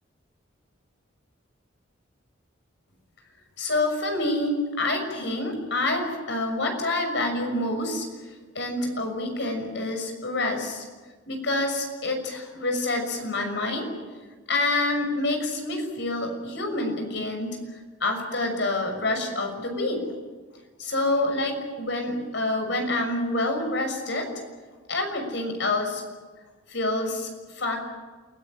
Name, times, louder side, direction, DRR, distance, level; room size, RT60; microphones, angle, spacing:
voice 1, 3.6-8.1 8.5-10.8 11.3-13.9 14.5-17.6 18.0-20.0 20.8-24.3 24.9-26.0 26.7-27.3 27.5-27.8, left 2 dB, 65° left, 4 dB, 6.4 m, -27 dB
29.0 x 17.5 x 9.0 m, 1.4 s
head